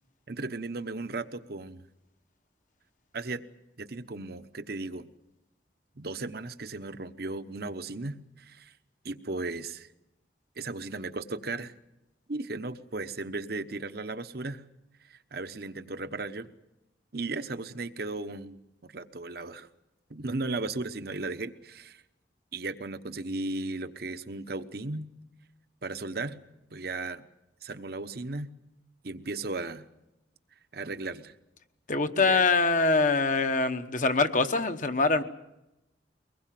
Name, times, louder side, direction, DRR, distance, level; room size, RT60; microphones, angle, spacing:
voice 1, 0.3-1.8 3.1-3.4 3.8-5.1 6.0-8.7 9.0-9.9 10.6-11.7 12.3-14.6 15.1-16.5 17.1-18.6 18.8-19.7 20.1-22.0 22.5-25.1 25.8-26.4 26.7-27.2 27.6-28.5 29.0-29.9 30.7-31.3 32.2-32.4, right 3 dB, 55° right, 11 dB, 1.0 m, -36 dB
voice 2, 31.9-35.2, left 3 dB, 45° left, 8 dB, 1.2 m, -24 dB
23.5 x 20.0 x 7.6 m, 0.92 s
head